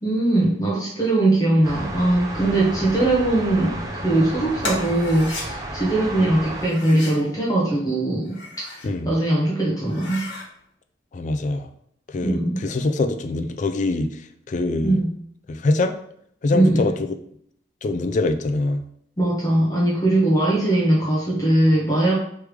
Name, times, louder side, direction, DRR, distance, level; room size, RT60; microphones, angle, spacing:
voice 1, 0.0-10.2 12.2-12.6 14.8-15.1 16.5-16.8 19.2-22.2, right 1 dB, 20° left, -6 dB, 1.0 m, -21 dB
sound 1, 1.6-6.7, right 1 dB, 20° right, 0.6 m, -32 dB
sound 2, 4.6-5.5 6.6-7.2 8.1-8.9 9.3-9.4 9.8-10.5, left 3 dB, 70° left, 1.4 m, -34 dB
voice 2, 8.8-9.1 11.1-11.7 12.1-14.2 14.5-15.0 15.5-16.0 16.4-16.9 17.8-18.8, left 2 dB, 40° left, 7 dB, 0.4 m, -23 dB
3.5 x 3.3 x 4.6 m, 0.67 s
head